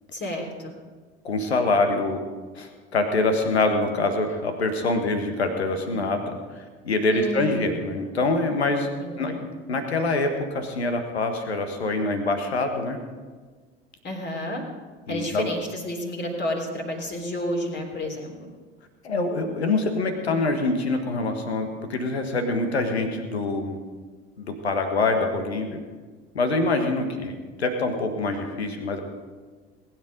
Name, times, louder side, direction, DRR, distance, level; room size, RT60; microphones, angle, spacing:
voice 1, 0.1-0.7 7.1-7.8 9.0-9.4 14.0-14.6 15.1-18.3, left 1 dB, 35° left, 1 dB, 3.5 m, -31 dB
voice 2, 1.2-2.2 2.5-8.9 9.2-9.3 9.7-13.0 15.1-15.5 19.0-23.8 24.4-25.7 26.3-29.0, left 2 dB, 80° left, 6 dB, 1.5 m, -25 dB
20.0 x 9.7 x 5.2 m, 1.4 s
figure-of-eight pair, 60°, 32 cm